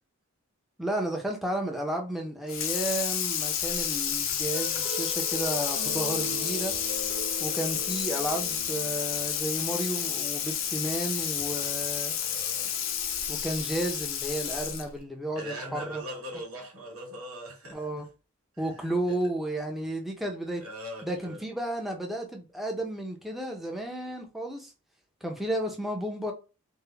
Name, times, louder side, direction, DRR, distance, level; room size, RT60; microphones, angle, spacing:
voice 1, 0.8-6.7 7.4-12.2 13.3-15.4 15.7-16.0 17.7-18.1 18.6-20.6 21.0-24.7 25.2-26.3, right 1 dB, ahead, 0.6 m, -32 dB
Water tap faucet / Sink (filling or washing), 2.5-15.0, left 9 dB, 60° left, 0.5 m, -30 dB
sound 1, 4.5-13.7, right 1 dB, 35° right, 1.0 m, -42 dB
voice 2, 11.9-12.8 15.4-18.1 18.5-19.2 20.6-21.4, equal, 80° right, 1.8 m, -41 dB
3.5 x 2.1 x 3.3 m
head